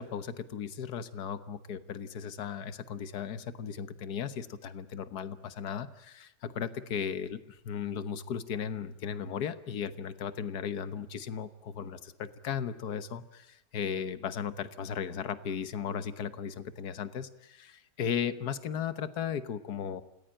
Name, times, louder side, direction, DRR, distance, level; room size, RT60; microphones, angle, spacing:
voice 1, 0.0-20.0, left 7 dB, 70° left, 12 dB, 1.7 m, -36 dB
28.0 x 19.5 x 8.9 m, 0.88 s
omnidirectional pair, 1.7 m